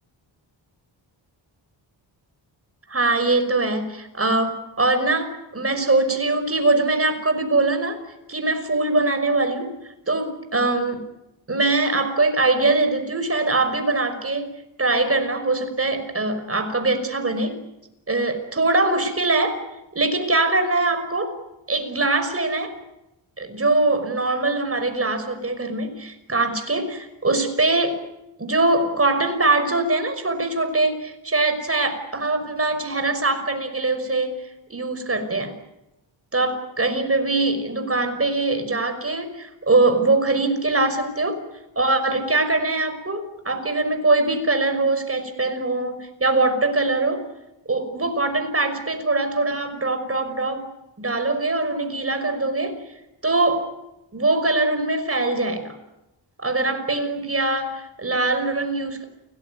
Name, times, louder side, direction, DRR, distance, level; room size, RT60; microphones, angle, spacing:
voice 1, 2.9-8.0 8.3-11.0 11.5-14.5 14.8-17.6 18.1-19.6 19.9-21.3 21.7-22.7 23.4-28.0 28.4-35.5 36.3-41.4 41.8-47.3 47.7-50.7 51.0-52.8 53.2-53.7 54.1-55.7 56.4-59.0, right 2 dB, 30° right, 7 dB, 5.7 m, -22 dB
29.5 x 19.0 x 9.6 m, 0.93 s
wide cardioid pair, 125°, 46 cm